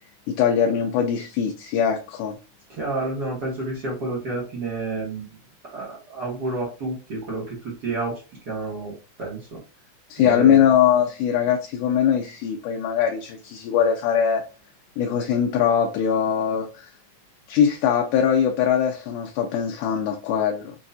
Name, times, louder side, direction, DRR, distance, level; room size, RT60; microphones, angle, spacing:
voice 1, 0.3-2.4 10.1-14.4 15.0-16.9 17.5-20.8, left 8 dB, 85° left, 2.1 m, -21 dB
voice 2, 2.7-5.4 5.7-8.9 9.2-9.6 10.2-10.7, right 2 dB, 50° right, 1.2 m, -30 dB
6.1 x 2.4 x 2.6 m
omnidirectional pair, 3.6 m